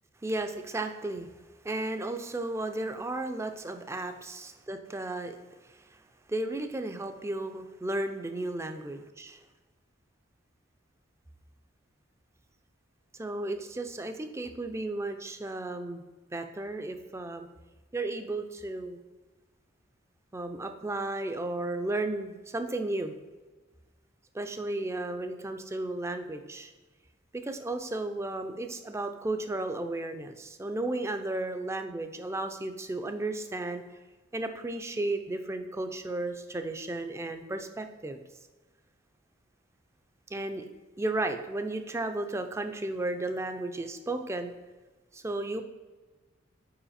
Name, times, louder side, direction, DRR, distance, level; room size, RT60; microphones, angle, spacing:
voice 1, 0.2-1.3 1.6-5.4 5.6-6.0 6.3-9.4 13.2-16.0 16.3-17.5 17.9-19.0 20.3-23.1 24.3-26.7 27.3-33.8 34.3-38.2 40.3-40.6 41.0-44.5 45.1-45.6, right 2 dB, 15° right, 7 dB, 0.4 m, -34 dB
5.7 x 4.6 x 4.1 m, 1.2 s
head